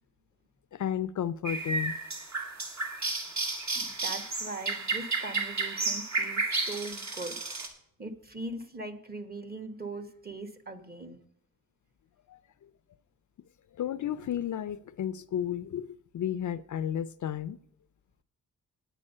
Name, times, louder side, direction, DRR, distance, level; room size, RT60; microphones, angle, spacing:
voice 1, 0.7-2.0 12.3-12.7 13.7-17.6, left 10 dB, 55° left, 16 dB, 0.4 m, -33 dB
sound 1, 1.4-7.7, right 3 dB, 50° right, 2.2 m, -32 dB
voice 2, 3.7-7.4 8.0-11.2, right 2 dB, 25° right, 8 dB, 1.2 m, -40 dB
9.8 x 9.0 x 5.5 m, 0.73 s
wide cardioid pair, 120°, 35 cm